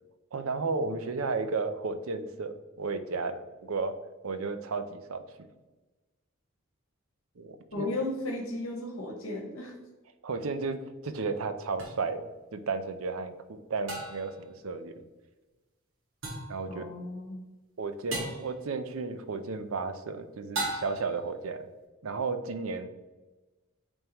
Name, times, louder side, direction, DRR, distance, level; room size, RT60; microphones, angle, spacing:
voice 1, 0.3-3.9 4.2-5.2 7.4-7.9 10.2-14.9 16.5-16.8 17.8-21.7 22.0-22.9, right 4 dB, 80° right, 10 dB, 0.6 m, -33 dB
voice 2, 7.7-9.7 16.7-17.4, left 2 dB, 80° left, 0 dB, 1.2 m, -35 dB
sound 1, 11.8-11.9 13.9-14.4 16.2-16.6 18.1-18.5 20.5-21.2, right 2 dB, 60° right, 1.8 m, -35 dB
8.8 x 3.6 x 3.0 m, 1.2 s
head